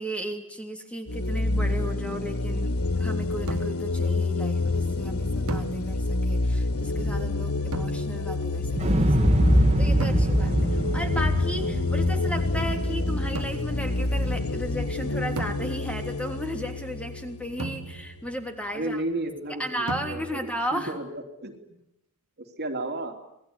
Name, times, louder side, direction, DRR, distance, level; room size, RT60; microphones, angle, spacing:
voice 1, 0.0-9.4 9.8-19.0 19.6-20.9, equal, 5° left, 4 dB, 3.3 m, -35 dB
sound 1, 1.1-18.5, left 2 dB, 75° left, 1.3 m, -28 dB
sound 2, 3.5-4.0 5.5-6.3 7.7-8.5 10.0-10.7 13.4-13.9 15.4-16.2 17.6-18.4 19.9-20.6, right 2 dB, 75° right, 1.4 m, -37 dB
Explosion, 8.8-14.8 15.1-15.2, right 1 dB, 30° right, 1.3 m, -25 dB
voice 2, 18.7-21.8 22.6-23.1, right 1 dB, 45° right, 5 dB, 3.1 m, -33 dB
27.5 x 20.5 x 9.8 m, 0.86 s
head